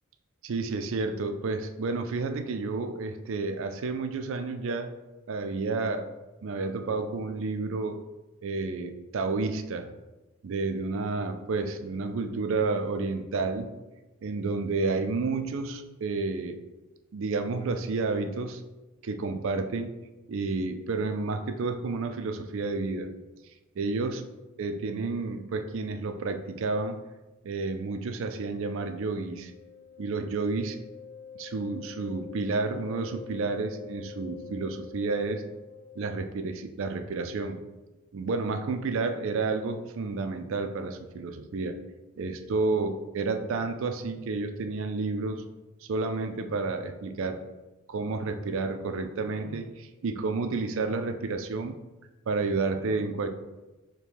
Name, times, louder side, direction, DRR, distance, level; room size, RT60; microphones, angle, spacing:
voice 1, 0.4-4.9 5.3-6.1 6.4-8.0 8.4-9.9 10.4-13.7 14.2-16.6 17.1-18.6 19.0-19.9 20.3-23.1 23.8-24.2 24.6-27.0 27.4-29.5 30.0-30.8 31.4-35.5 36.0-37.6 38.1-41.8 42.2-45.4 45.8-47.4 47.9-51.8 52.3-53.3, right 3 dB, 60° right, 7 dB, 0.4 m, -30 dB
Wind instrument woodwind instrument, 29.3-36.4, left 6 dB, 35° left, 0.4 m, -46 dB
5.1 x 2.2 x 4.6 m, 1.1 s
head